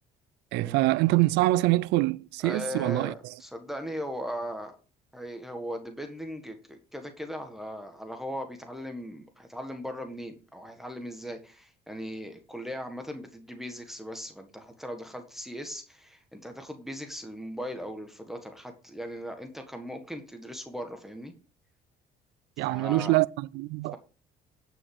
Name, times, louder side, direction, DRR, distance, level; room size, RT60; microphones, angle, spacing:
voice 1, 0.5-3.3 22.6-24.0, right 19 dB, 90° right, 0.4 m, -25 dB
voice 2, 2.4-4.8 5.1-21.3 22.7-23.2, equal, ahead, 1.6 m, -38 dB
9.4 x 6.3 x 4.7 m
cardioid pair, 110°, 17 cm